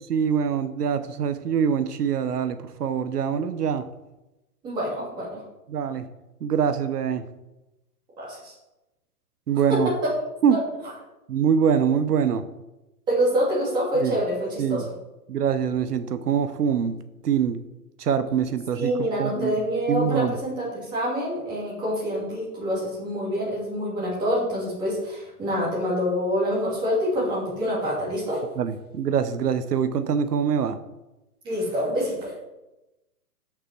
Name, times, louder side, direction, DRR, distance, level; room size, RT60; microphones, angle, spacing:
voice 1, 0.1-3.8 5.7-6.1 6.4-7.2 9.5-9.9 10.4-10.6 11.3-12.4 14.0-14.2 14.6-14.9 15.3-17.0 17.2-17.6 18.0-19.5 19.9-20.4 28.6-30.8, right 7 dB, 80° right, 10 dB, 1.0 m, -24 dB
voice 2, 4.6-5.4 8.2-8.5 9.7-10.1 10.5-10.6 13.1-14.8 18.7-28.4 31.4-32.4, equal, 10° right, -7 dB, 2.8 m, -26 dB
13.0 x 5.9 x 4.6 m, 1.0 s
hypercardioid pair, 175°, 47 cm